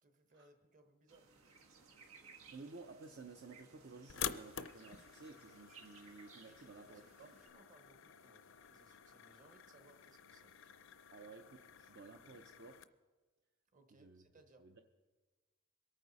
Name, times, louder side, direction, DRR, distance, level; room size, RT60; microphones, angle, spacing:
voice 1, 0.0-1.3 6.5-10.9 13.7-14.8, right 2 dB, 35° right, 6 dB, 1.2 m, -67 dB
sound 1, 1.1-7.5, right 5 dB, 85° right, 1.5 m, -62 dB
voice 2, 2.5-7.3 11.1-12.8 13.9-14.2 14.6-14.8, right 3 dB, 50° right, 5 dB, 0.6 m, -54 dB
sound 2, 4.1-12.8, left 9 dB, 60° left, 0.5 m, -49 dB
23.0 x 9.0 x 4.1 m, 1.3 s
head